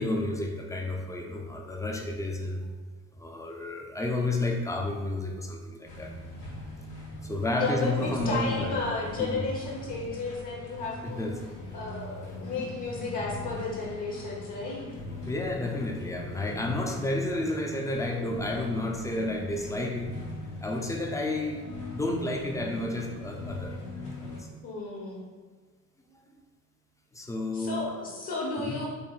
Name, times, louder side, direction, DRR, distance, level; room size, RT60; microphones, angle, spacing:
voice 1, 0.0-2.6 3.2-6.1 7.2-8.7 9.2-9.4 11.0-11.4 12.6-12.7 15.3-20.1 20.6-21.6 21.9-23.7 24.2-24.4 27.1-27.8 28.6-28.8, left 2 dB, 10° left, 1 dB, 0.3 m, -31 dB
sound 1, 5.9-24.4, left 2 dB, 90° left, 1.0 m, -41 dB
voice 2, 7.6-11.3 11.7-14.9 24.6-25.2 27.5-28.9, left 3 dB, 45° left, -4 dB, 0.9 m, -33 dB
3.6 x 3.4 x 2.3 m, 1.4 s
hypercardioid pair, 55°, 45 cm